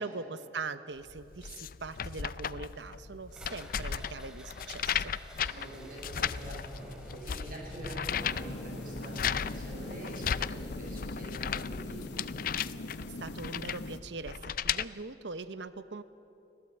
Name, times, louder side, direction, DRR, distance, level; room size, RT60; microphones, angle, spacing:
voice 1, 0.0-5.1 13.2-16.0, right 4 dB, 80° right, 13 dB, 0.9 m, -41 dB
sound 1, 1.1-14.9, left 8 dB, 50° left, 0.5 m, -36 dB
sound 2, 3.3-13.5, equal, 5° right, 2.6 m, -49 dB
voice 2, 5.3-12.1, right 1 dB, 50° right, -2 dB, 7.6 m, -46 dB
sound 3, 8.1-14.0, left 2 dB, 70° left, 1.0 m, -42 dB
25.0 x 17.0 x 8.7 m, 2.9 s
head